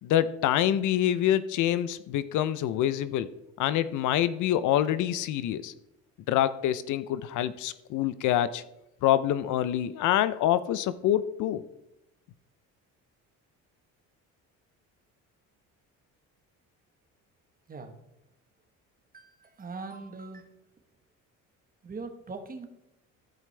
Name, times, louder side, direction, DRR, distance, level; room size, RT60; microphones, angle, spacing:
voice 1, 0.0-3.3 3.6-5.7 6.3-8.6 9.0-11.7, left 11 dB, 70° left, 15 dB, 0.6 m, -26 dB
voice 2, 19.1-20.5 21.8-22.7, right 4 dB, 25° right, 7 dB, 1.2 m, -41 dB
14.5 x 5.1 x 3.3 m, 0.86 s
cardioid pair, 110°, 32 cm